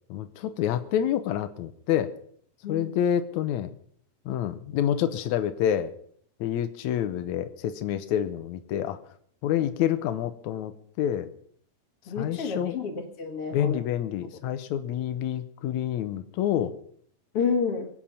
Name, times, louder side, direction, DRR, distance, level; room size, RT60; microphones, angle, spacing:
voice 1, 0.1-2.1 2.7-3.7 4.3-5.9 6.4-9.0 9.4-11.3 12.2-12.8 13.5-16.7, left 10 dB, 75° left, 10 dB, 2.2 m, -28 dB
voice 2, 2.6-3.0 12.1-13.8 17.3-17.9, left 5 dB, 50° left, 5 dB, 2.7 m, -30 dB
23.0 x 9.0 x 5.7 m, 0.62 s
omnidirectional pair, 3.5 m